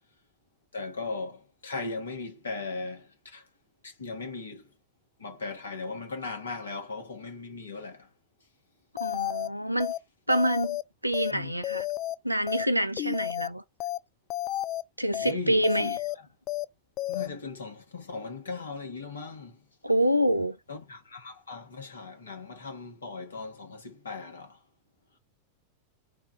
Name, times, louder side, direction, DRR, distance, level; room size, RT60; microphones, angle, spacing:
voice 1, 0.7-3.5 3.8-4.6 5.2-8.1 11.3-11.5 15.2-16.0 17.1-19.6 20.7-24.6, left 3 dB, 70° left, 1.3 m, -38 dB
sound 1, 9.0-9.5 9.8-10.0 10.3-10.8 11.1-11.3 11.6-12.1 12.5-12.6 13.0-13.5 13.8-14.0 14.3-14.8 15.1-15.3 15.6-16.1 16.5-16.6 17.0-17.3, left 15 dB, 35° left, 0.3 m, -32 dB
voice 2, 9.0-9.9 10.3-11.9 12.2-13.6 15.0-16.0 19.8-20.6, equal, 90° right, 0.4 m, -26 dB
4.0 x 2.4 x 4.2 m
figure-of-eight pair, 90°, 0 cm